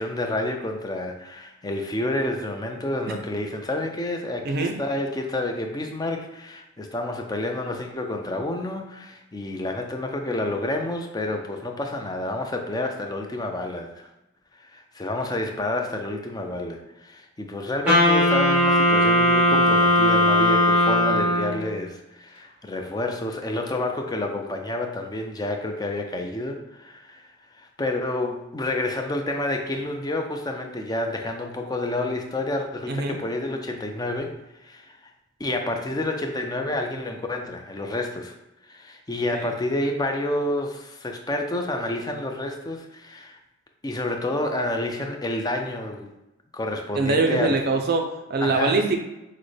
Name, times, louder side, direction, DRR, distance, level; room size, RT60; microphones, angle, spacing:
voice 1, 0.0-14.1 14.5-34.3 34.6-35.1 35.4-38.3 38.7-43.4 43.8-46.1 46.5-47.6 48.4-48.8, left 1 dB, 20° left, 4 dB, 0.4 m, -29 dB
voice 2, 4.4-4.8 32.9-33.2 39.3-39.4 46.9-49.0, right 3 dB, 45° right, 4 dB, 0.4 m, -23 dB
Wind instrument woodwind instrument, 17.9-21.7, left 1 dB, 5° right, 1.4 m, -18 dB
6.2 x 2.1 x 3.2 m, 0.96 s
head